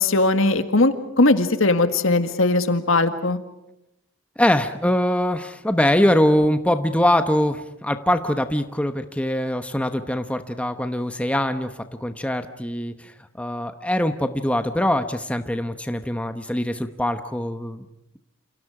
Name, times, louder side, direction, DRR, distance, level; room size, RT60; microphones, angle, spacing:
voice 1, 0.0-3.4, left 2 dB, 65° left, 9 dB, 1.8 m, -19 dB
voice 2, 4.4-17.9, left 1 dB, 5° left, 8 dB, 1.0 m, -23 dB
29.0 x 28.5 x 4.9 m, 0.86 s
head